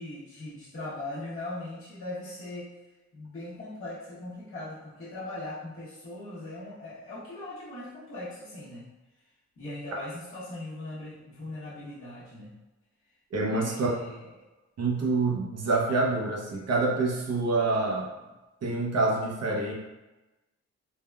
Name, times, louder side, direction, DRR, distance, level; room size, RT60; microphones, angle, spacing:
voice 1, 0.0-2.7 3.1-8.9 9.6-12.5 13.5-14.4, left 2 dB, 50° left, -10 dB, 0.9 m, -40 dB
voice 2, 13.3-14.0 14.8-18.1 18.6-19.7, right 3 dB, 60° right, -1 dB, 0.7 m, -26 dB
3.4 x 2.2 x 2.2 m, 1.1 s
cardioid pair, 85°, 29 cm